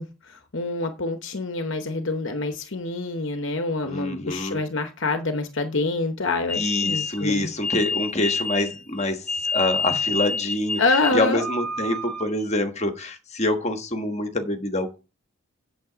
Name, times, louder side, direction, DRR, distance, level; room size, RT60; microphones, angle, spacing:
voice 1, 0.0-7.5 10.8-11.4, left 3 dB, 55° left, 7 dB, 0.9 m, -26 dB
voice 2, 3.8-4.6 6.6-10.8 11.1-15.0, left 1 dB, 30° left, 6 dB, 1.3 m, -26 dB
sound 1, 6.5-12.5, left 3 dB, 5° left, 1.7 m, -28 dB
8.4 x 7.4 x 5.0 m, 0.31 s
head